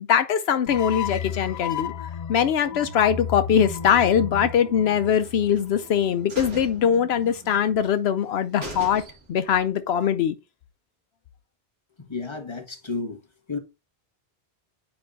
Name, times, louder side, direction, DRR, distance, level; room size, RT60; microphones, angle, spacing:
voice 1, 0.0-1.9 2.3-9.0 9.3-10.4, left 8 dB, 80° left, 0.8 m, -22 dB
sound 1, 0.7-5.9, left 9 dB, 55° left, 0.5 m, -34 dB
sound 2, 2.7-8.0, right 6 dB, 30° right, 0.9 m, -43 dB
sound 3, 5.2-5.9 6.3-7.6 7.9-8.0 8.3-8.4 8.6-9.5 9.9-10.0, right 1 dB, 80° right, 2.6 m, -39 dB
voice 2, 12.0-13.2 13.5-13.6, left 3 dB, 25° left, 1.4 m, -32 dB
8.7 x 5.1 x 2.7 m
omnidirectional pair, 1.1 m